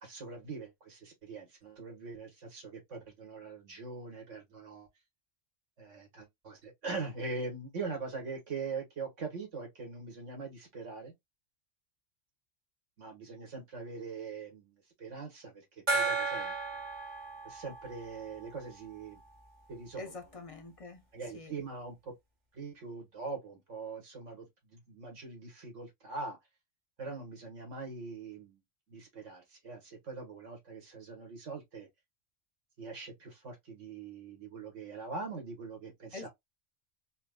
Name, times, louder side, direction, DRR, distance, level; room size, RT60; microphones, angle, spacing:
voice 1, 0.0-4.9 5.8-11.1 13.0-16.5 17.4-19.2 19.7-20.1 21.1-22.1 22.5-26.4 27.0-28.6 28.9-31.9 32.8-36.3, right 4 dB, 75° right, 1.8 m, -42 dB
Gong, 15.9-19.1, right 3 dB, 40° right, 1.0 m, -35 dB
voice 2, 20.0-21.0 21.3-21.5 36.1-36.3, left 3 dB, 40° left, 0.5 m, -45 dB
4.3 x 2.3 x 2.2 m
omnidirectional pair, 1.3 m